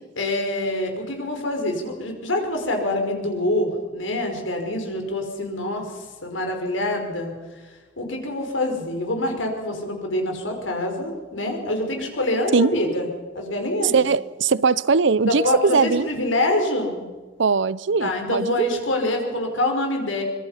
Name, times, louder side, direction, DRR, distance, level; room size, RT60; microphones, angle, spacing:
voice 1, 0.2-7.6 8.0-13.1 13.3-14.0 15.3-17.0 18.0-20.2, left 1 dB, 85° left, 3 dB, 5.3 m, -25 dB
voice 2, 13.9-16.1 17.4-18.8, right 5 dB, 70° right, 20 dB, 0.6 m, -20 dB
25.0 x 22.0 x 5.8 m, 1.3 s
head